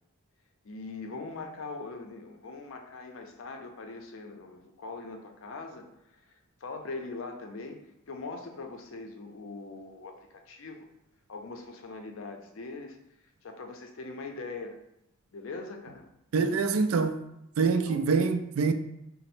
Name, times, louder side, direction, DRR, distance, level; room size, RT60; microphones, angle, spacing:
voice 1, 0.6-10.9 11.3-13.0 13.4-14.8 15.3-16.1 17.8-18.1, left 3 dB, 65° left, 0.5 m, -41 dB
voice 2, 16.3-17.2 17.6-18.7, right 4 dB, 80° right, 0.3 m, -25 dB
4.1 x 2.0 x 4.2 m
head